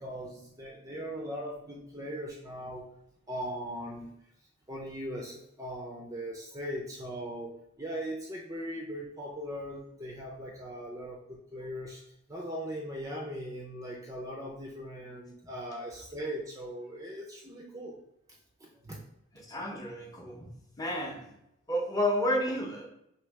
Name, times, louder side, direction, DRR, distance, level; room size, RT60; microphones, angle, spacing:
voice 1, 0.0-2.9 3.3-4.1 4.7-12.0 12.3-18.0 18.6-19.0, equal, 15° right, -1 dB, 0.5 m, -39 dB
voice 2, 19.3-20.5 20.8-21.3 21.7-22.9, left 1 dB, 20° left, 0 dB, 0.8 m, -31 dB
3.2 x 2.8 x 4.6 m, 0.79 s
head